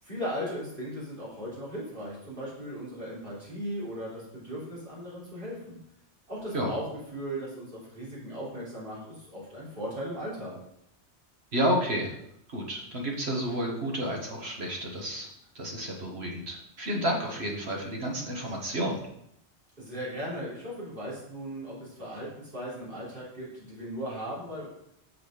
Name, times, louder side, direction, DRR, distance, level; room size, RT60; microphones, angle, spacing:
voice 1, 0.0-5.8 6.3-6.9 7.1-10.6 19.8-24.7, equal, 50° right, -8 dB, 3.5 m, -37 dB
voice 2, 11.5-12.1 12.5-15.3 15.5-19.0, equal, 65° right, 0 dB, 1.7 m, -30 dB
6.7 x 5.1 x 5.0 m, 0.76 s
omnidirectional pair, 1.1 m